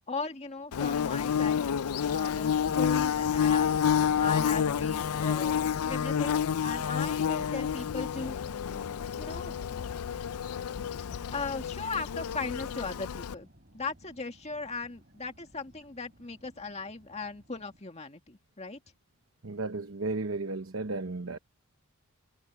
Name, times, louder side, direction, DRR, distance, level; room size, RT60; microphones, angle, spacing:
voice 1, 0.1-1.6 2.0-3.7 4.2-5.6 5.9-8.4 9.2-9.6 11.3-13.5 13.7-18.8, left 4 dB, 30° left, 2.1 m, -38 dB
Bird / Buzz, 0.7-13.3, left 8 dB, 85° left, 0.4 m, -29 dB
sound 1, 2.6-17.8, equal, 45° right, 5.3 m, -52 dB
voice 2, 19.4-21.4, right 3 dB, 65° right, 1.0 m, -34 dB
head